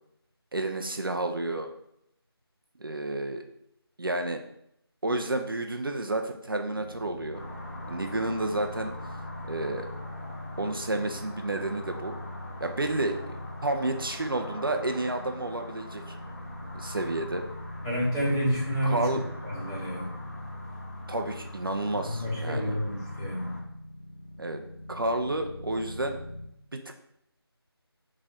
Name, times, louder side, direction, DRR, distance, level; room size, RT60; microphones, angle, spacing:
voice 1, 0.5-1.7 2.8-3.4 4.0-4.4 5.0-7.4 7.9-8.9 9.4-9.9 10.6-12.1 12.6-13.2 13.6-16.2 16.7-17.4 18.8-19.2 21.1-22.8 24.4-24.6 24.9-26.2 26.7-26.8, right 2 dB, 55° right, 5 dB, 0.5 m, -30 dB
sound 1, 6.7-26.5, left 1 dB, 80° left, 1.2 m, -41 dB
sound 2, 7.3-23.6, left 2 dB, 35° left, 1.0 m, -46 dB
voice 2, 17.8-20.1 22.0-23.6, equal, 10° left, -12 dB, 1.0 m, -29 dB
3.6 x 3.2 x 4.0 m, 0.76 s
figure-of-eight pair, 175°, 14 cm